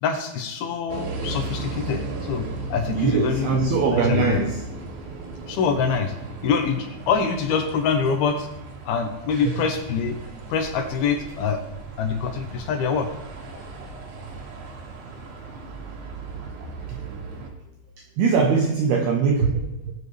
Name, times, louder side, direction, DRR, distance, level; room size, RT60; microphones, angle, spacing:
voice 1, 0.0-3.5 3.9-4.4 5.5-6.2 6.4-8.5 8.9-10.2 10.5-11.6 12.0-13.1, left 6 dB, 75° left, 5 dB, 2.3 m, -25 dB
sound 1, 0.9-17.5, right 3 dB, 60° right, 3.4 m, -36 dB
voice 2, 2.9-4.6 16.9-17.0 18.2-19.9, right 5 dB, 80° right, 2 dB, 2.3 m, -21 dB
19.0 x 9.4 x 3.3 m, 0.94 s
omnidirectional pair, 5.7 m